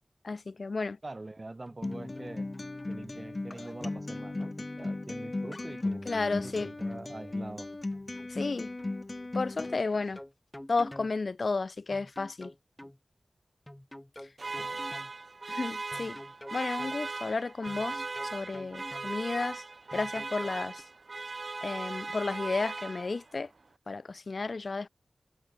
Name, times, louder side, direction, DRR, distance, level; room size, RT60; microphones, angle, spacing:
voice 1, 0.2-1.0 6.1-6.7 8.3-8.7 9.3-10.2 10.7-12.5 15.5-16.2 16.5-19.6 19.9-20.8 21.6-23.5 23.9-24.9, left 3 dB, 60° left, 0.8 m, -32 dB
voice 2, 1.0-2.5 2.9-7.7 14.6-14.8, right 2 dB, 35° right, 5.2 m, -44 dB
sound 1, 1.7-2.3 2.5-3.1 3.9-4.9 5.7-7.1 7.9-8.5 8.8-8.9 9.7-11.1 11.9-13.0 13.7-15.1 15.9-17.0 17.7-19.1 19.9-20.8, left 1 dB, 10° left, 2.8 m, -49 dB
Acoustic guitar, 1.8-9.8, left 2 dB, 35° left, 1.5 m, -36 dB
sound 2, 14.4-23.4, right 3 dB, 55° right, 2.0 m, -38 dB
wide cardioid pair, 75°, 0 cm